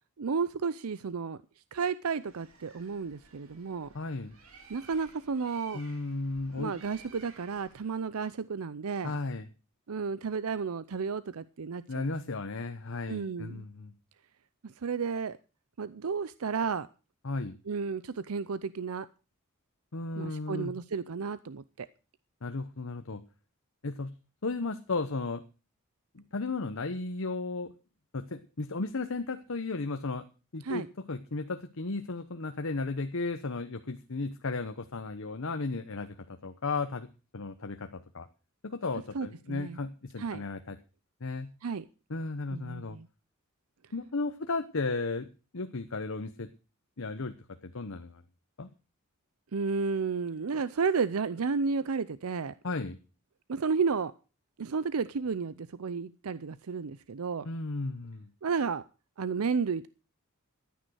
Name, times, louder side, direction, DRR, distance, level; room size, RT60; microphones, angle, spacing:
voice 1, 0.2-1.4 1.7-3.9 4.7-5.8 6.6-9.1 9.9-12.1 13.1-13.6 14.6-15.4 15.8-16.9 17.7-19.1 20.2-21.9 30.6-30.9 39.1-39.8 40.2-40.4 41.6-41.8 42.5-43.1 49.5-52.5 53.5-54.1 54.6-57.5 58.4-58.8 59.2-59.9, right 5 dB, 85° right, 0.6 m, -32 dB
Bird, 2.1-8.1, right 4 dB, 70° right, 3.5 m, -56 dB
voice 2, 3.9-4.3 5.7-6.7 9.0-9.5 11.9-13.9 17.2-17.5 19.9-20.7 22.4-23.2 23.8-24.1 24.4-25.4 26.1-27.7 28.1-30.2 30.5-37.1 37.3-38.3 38.6-40.8 41.2-41.5 42.1-43.0 43.9-45.3 45.5-46.5 47.0-47.3 47.6-48.2 48.6-48.7 52.6-53.0 57.4-58.3, left 3 dB, 65° left, 0.9 m, -34 dB
14.0 x 9.3 x 6.3 m
head